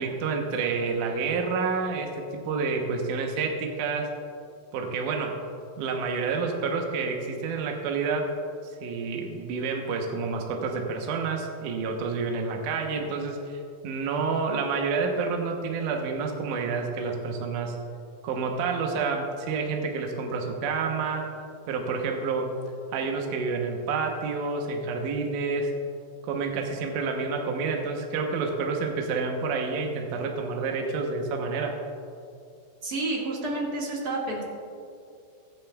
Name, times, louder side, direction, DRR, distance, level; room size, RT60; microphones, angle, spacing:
voice 1, 0.0-4.1 4.7-5.4 5.8-8.3 8.8-17.7 18.2-21.3 21.7-22.6 22.9-25.7 26.2-31.7, right 4 dB, 70° right, 2 dB, 2.1 m, -29 dB
voice 2, 32.8-34.4, right 2 dB, 40° right, -3 dB, 1.4 m, -29 dB
23.0 x 9.0 x 2.3 m, 2.4 s
omnidirectional pair, 4.4 m